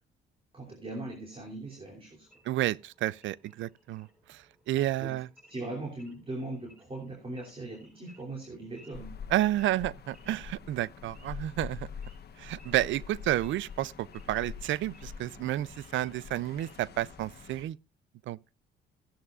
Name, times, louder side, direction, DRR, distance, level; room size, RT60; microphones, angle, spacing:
voice 1, 0.5-2.3 4.8-5.1 5.5-9.1, right 2 dB, 30° right, 3.0 m, -40 dB
Wild animals / Idling, 2.3-17.0, equal, 5° right, 5.7 m, -63 dB
voice 2, 2.4-5.3 9.3-11.9 12.4-17.8 18.3-18.4, right 14 dB, 75° right, 0.4 m, -31 dB
sound 1, 8.9-17.6, left 6 dB, 55° left, 1.2 m, -45 dB
15.0 x 11.0 x 2.4 m
cardioid pair, 90°, 20 cm